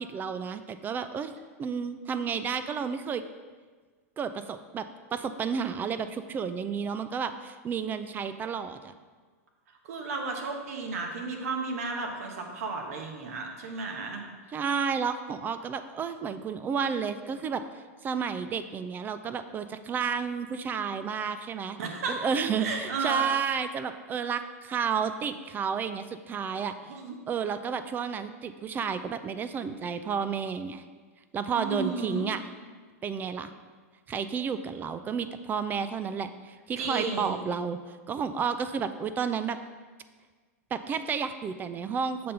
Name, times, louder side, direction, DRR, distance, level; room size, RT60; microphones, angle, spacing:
voice 1, 0.0-1.3 1.6-3.2 4.2-8.8 14.5-17.6 18.0-21.8 22.1-26.7 27.3-30.8 31.3-32.4 33.0-33.5 34.1-37.8 38.1-39.6 40.7-42.3, right 6 dB, 25° right, 11 dB, 0.4 m, -31 dB
voice 2, 9.8-14.2 21.8-22.2 22.6-23.2 26.8-27.2 31.5-32.3 36.8-37.4, right 4 dB, 70° right, 2 dB, 1.2 m, -33 dB
6.6 x 3.8 x 5.6 m, 1.5 s
hypercardioid pair, 115°, 8 cm